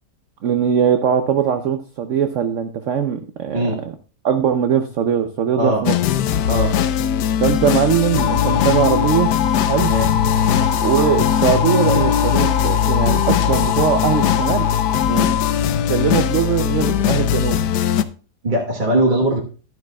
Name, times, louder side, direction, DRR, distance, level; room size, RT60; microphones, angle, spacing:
voice 1, 0.4-3.6 4.2-6.0 7.4-9.4 9.7-9.9 10.8-14.7 15.9-17.6, right 8 dB, 60° right, 7 dB, 0.9 m, -20 dB
sound 1, 5.9-18.0, left 9 dB, 85° left, 1.3 m, -19 dB
sound 2, 8.2-15.5, left 8 dB, 50° left, 0.9 m, -24 dB
voice 2, 18.4-19.4, right 1 dB, 30° right, 0 dB, 1.3 m, -19 dB
12.0 x 11.0 x 2.3 m, 0.36 s
omnidirectional pair, 1.7 m